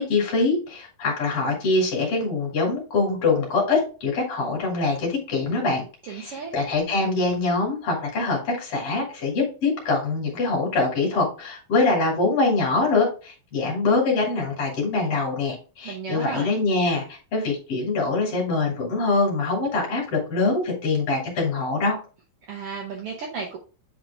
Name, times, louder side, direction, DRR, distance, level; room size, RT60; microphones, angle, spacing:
voice 1, 0.0-22.0, left 3 dB, 45° left, -3 dB, 2.8 m, -24 dB
voice 2, 6.1-6.5 15.8-16.5 22.5-23.6, right 5 dB, 75° right, 0 dB, 1.3 m, -33 dB
8.2 x 3.7 x 3.4 m, 0.33 s
omnidirectional pair, 4.0 m